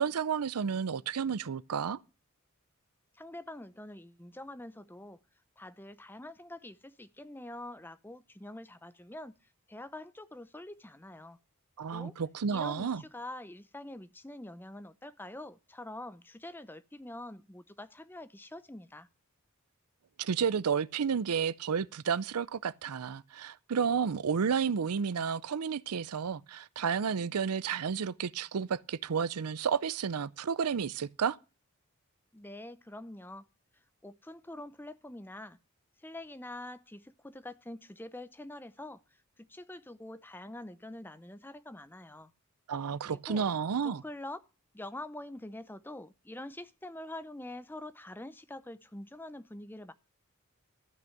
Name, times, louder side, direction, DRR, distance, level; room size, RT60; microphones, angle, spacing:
voice 1, 0.0-2.0 11.8-13.0 20.2-31.4 42.7-44.0, right 6 dB, 90° right, 0.5 m, -31 dB
voice 2, 3.1-5.2 5.6-9.3 9.7-11.4 11.9-12.2 12.5-19.1 32.3-33.5 34.0-35.6 36.0-39.0 39.4-42.3 43.0-43.5 43.8-44.4 44.7-49.9, left 1 dB, 10° left, 0.6 m, -45 dB
13.0 x 6.2 x 7.8 m
head